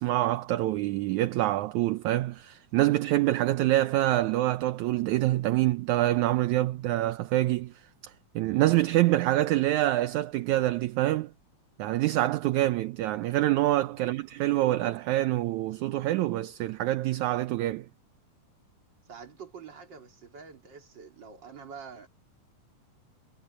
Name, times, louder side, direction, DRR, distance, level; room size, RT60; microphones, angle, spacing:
voice 1, 0.0-11.3 11.8-17.9, right 15 dB, 75° right, 2.0 m, -26 dB
voice 2, 19.0-22.1, right 6 dB, 35° right, 3.2 m, -46 dB
omnidirectional pair, 3.6 m